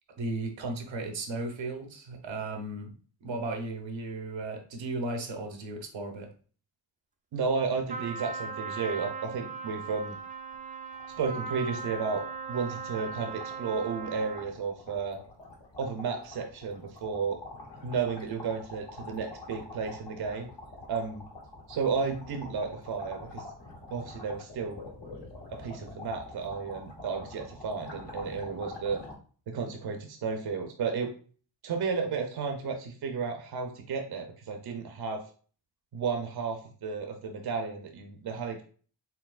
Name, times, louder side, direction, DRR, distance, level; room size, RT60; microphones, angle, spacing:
voice 1, 0.2-2.9 3.2-6.3, right 2 dB, 85° right, 5 dB, 1.0 m, -35 dB
voice 2, 7.3-10.2 11.2-12.2 12.5-15.2 15.8-17.4 17.8-20.5 20.9-21.2 21.7-23.4 23.9-24.8 25.5-29.0 29.5-31.1 31.6-35.2 35.9-38.6, right 5 dB, 55° right, 4 dB, 0.7 m, -33 dB
Trumpet, 7.9-14.6, right 5 dB, 20° right, 0.4 m, -39 dB
sound 1, 10.1-10.2 10.5-10.6 10.9-29.1, left 2 dB, 65° left, 1.6 m, -46 dB
4.5 x 3.6 x 2.4 m, 0.41 s
wide cardioid pair, 125°, 44 cm